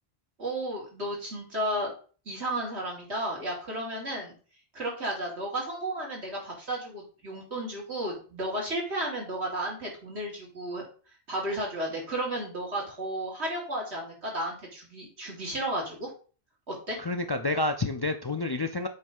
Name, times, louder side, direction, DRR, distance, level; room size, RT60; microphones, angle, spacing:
voice 1, 0.4-1.9 2.3-4.3 4.7-10.9 11.3-16.1 16.7-17.0, right 1 dB, 80° right, -3 dB, 3.2 m, -33 dB
voice 2, 17.0-18.9, left 2 dB, 40° left, 6 dB, 0.3 m, -29 dB
7.8 x 3.3 x 5.4 m, 0.38 s
omnidirectional pair, 1.1 m